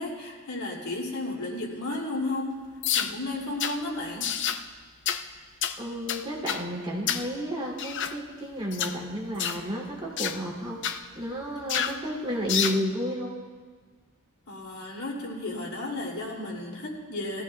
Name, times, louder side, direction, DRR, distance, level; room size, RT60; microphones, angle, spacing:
voice 1, 0.0-2.6 2.9-4.3 14.5-17.4, left 2 dB, 85° left, -2 dB, 2.8 m, -33 dB
sound 1, 2.8-3.1 3.6-3.8 4.2-4.6 5.1-5.2 5.6-5.8 6.1-6.6 7.1-7.3 7.8-8.2 8.7-9.0 9.4-9.6 10.2-10.4 10.8-11.0 11.7-12.0 12.5-12.8, left 8 dB, 55° left, 0.5 m, -28 dB
voice 2, 5.8-10.8 11.1-13.4, equal, 25° right, -4 dB, 2.9 m, -32 dB
20.5 x 14.5 x 2.4 m, 1.5 s
head